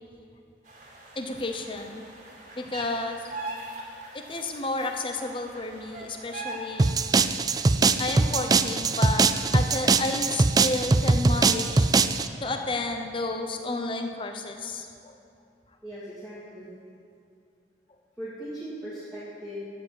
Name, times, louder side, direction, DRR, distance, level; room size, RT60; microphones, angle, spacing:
sound 1, 0.7-7.3, right 2 dB, 45° right, 2.1 m, -41 dB
voice 1, 1.1-2.0 2.6-3.3 4.1-6.9 8.0-11.9 12.4-15.2, left 2 dB, 30° left, 5 dB, 0.8 m, -31 dB
sound 2, 6.8-12.3, right 4 dB, 20° right, 0.3 m, -22 dB
voice 2, 15.8-16.7 18.2-19.6, equal, 5° left, -12 dB, 3.0 m, -38 dB
12.5 x 8.0 x 8.1 m, 2.5 s
head